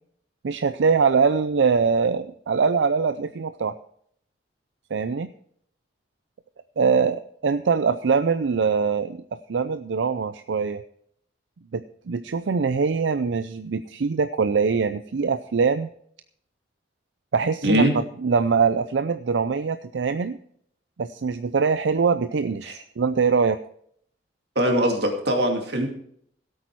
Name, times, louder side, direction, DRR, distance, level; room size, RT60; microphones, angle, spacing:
voice 1, 0.4-3.7 4.9-5.3 6.8-9.2 9.5-10.8 11.7-15.9 17.3-20.4 21.0-23.6, right 5 dB, 90° right, 11 dB, 0.5 m, -23 dB
voice 2, 17.6-18.0 22.6-22.7 24.6-25.9, right 1 dB, 65° right, 2 dB, 2.5 m, -21 dB
16.0 x 8.7 x 4.6 m, 0.65 s
head